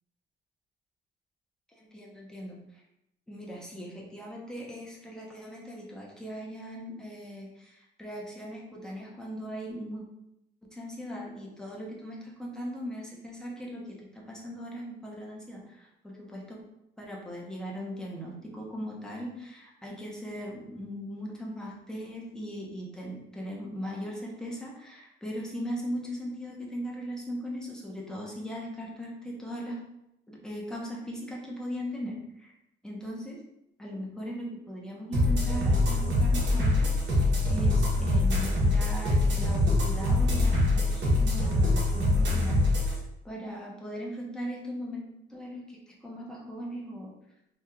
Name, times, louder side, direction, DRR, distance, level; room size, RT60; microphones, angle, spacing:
voice 1, 1.8-2.8 3.3-10.0 10.6-16.6 17.0-29.8 30.3-32.5 32.8-33.4 33.8-43.0 43.2-45.0 45.3-47.1, equal, 5° left, -3 dB, 1.0 m, -39 dB
sound 1, 35.1-42.9, left 1 dB, 65° right, 1.1 m, -24 dB
3.0 x 2.7 x 3.6 m, 0.83 s
cardioid pair, 90°, 20 cm